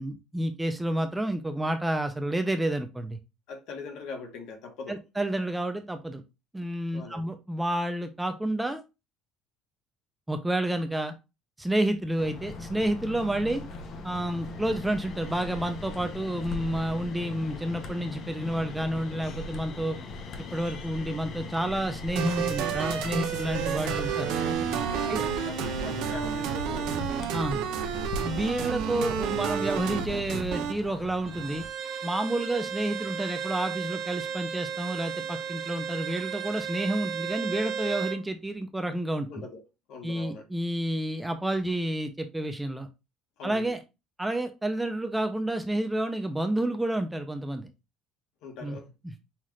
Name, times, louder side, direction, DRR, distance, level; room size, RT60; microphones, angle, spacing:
voice 1, 0.0-3.2 4.9-6.2 6.5-8.8 10.3-11.1 11.6-13.6 14.0-20.0 20.5-24.3 25.1-25.3 27.3-27.6 28.2-31.6 32.0-39.4 40.0-42.9 43.4-43.8 44.2-47.7 48.6-48.8 49.0-49.2, right 1 dB, 5° right, 0.5 m, -30 dB
voice 2, 3.5-5.0 6.9-7.3 24.9-27.0 39.3-39.6 39.9-40.4 43.4-43.8 48.4-48.9, left 4 dB, 65° left, 1.3 m, -41 dB
sound 1, 12.2-31.7, left 3 dB, 45° left, 0.7 m, -40 dB
sound 2, 22.2-30.7, right 7 dB, 75° right, 0.7 m, -30 dB
Bowed string instrument, 31.3-38.2, right 7 dB, 40° right, 1.3 m, -34 dB
5.7 x 2.5 x 3.1 m
cardioid pair, 155°, 0 cm